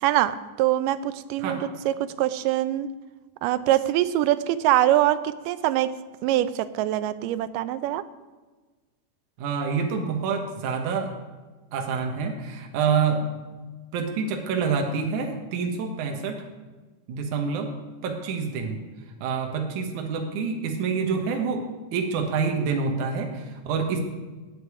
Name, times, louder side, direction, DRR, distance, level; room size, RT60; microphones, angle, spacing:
voice 1, 0.0-2.9 3.4-5.9 6.2-8.0, right 13 dB, 85° right, 13 dB, 2.2 m, -24 dB
voice 2, 9.4-11.1 11.7-13.3 13.9-16.4 17.1-17.7 18.0-18.8 19.2-24.0, right 5 dB, 70° right, 2 dB, 2.6 m, -27 dB
16.5 x 8.4 x 4.8 m, 1.3 s
omnidirectional pair, 3.8 m